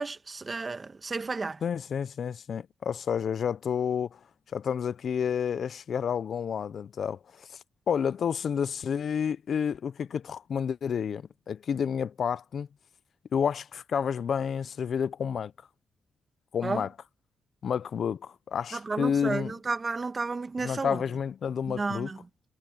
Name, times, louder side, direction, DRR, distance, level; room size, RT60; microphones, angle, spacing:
voice 1, 0.0-1.6 16.6-16.8 18.7-21.0 21.7-22.2, right 3 dB, 30° right, 1.4 m, -32 dB
voice 2, 1.6-4.2 4.5-7.6 7.9-12.7 13.3-15.5 16.5-16.9 17.6-19.5 20.6-22.1, left 7 dB, 60° left, 0.5 m, -30 dB
cardioid pair, 105°, 0 cm